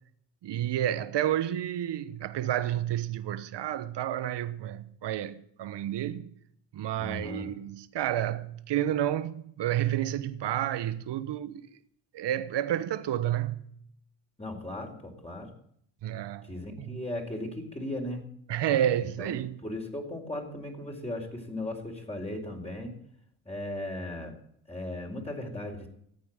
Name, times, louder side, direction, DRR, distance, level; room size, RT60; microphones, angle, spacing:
voice 1, 0.4-6.3 6.7-11.6 12.1-13.6 16.0-16.5 16.9-17.0 18.5-19.6, right 11 dB, 65° right, 1.1 m, -30 dB
voice 2, 7.0-7.5 14.4-15.5 16.5-18.2 19.2-19.3 19.6-22.9 23.5-24.3 24.7-25.9, left 1 dB, 15° left, 4.5 m, -37 dB
14.5 x 8.9 x 8.8 m
supercardioid pair, 55°, 46 cm